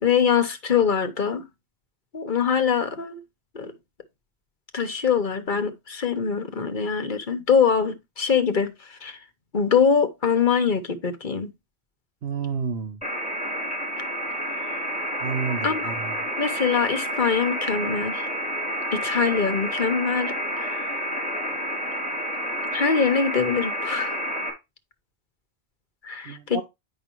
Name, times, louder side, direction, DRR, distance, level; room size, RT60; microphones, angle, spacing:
voice 1, 0.0-1.5 2.1-3.2 3.5-3.7 4.7-9.2 9.5-11.5 14.5-14.8 15.6-15.9 16.4-18.2 18.9-21.0 22.7-24.2 26.0-26.6, left 6 dB, 50° left, 1.2 m, -23 dB
voice 2, 12.2-13.0 15.2-16.1 26.2-26.6, right 6 dB, 70° right, 1.2 m, -30 dB
sound 1, 13.0-24.5, equal, 5° left, 3.2 m, -29 dB
9.4 x 5.5 x 3.0 m
omnidirectional pair, 1.1 m